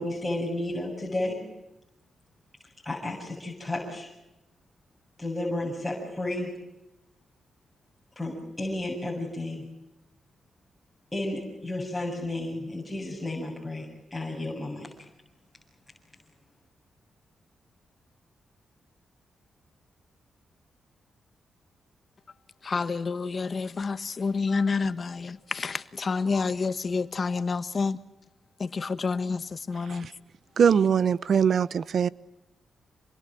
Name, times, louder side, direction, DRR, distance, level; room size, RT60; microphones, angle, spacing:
voice 1, 0.0-1.4 2.8-4.1 5.2-6.5 8.2-9.6 11.1-14.9, left 1 dB, 10° left, -2 dB, 7.7 m, -32 dB
voice 2, 22.6-28.0 28.6-30.1, left 4 dB, 45° left, 13 dB, 1.4 m, -29 dB
voice 3, 30.6-32.1, right 7 dB, 65° right, 19 dB, 0.9 m, -22 dB
27.5 x 21.5 x 7.7 m, 0.94 s
cardioid pair, 70°, 0 cm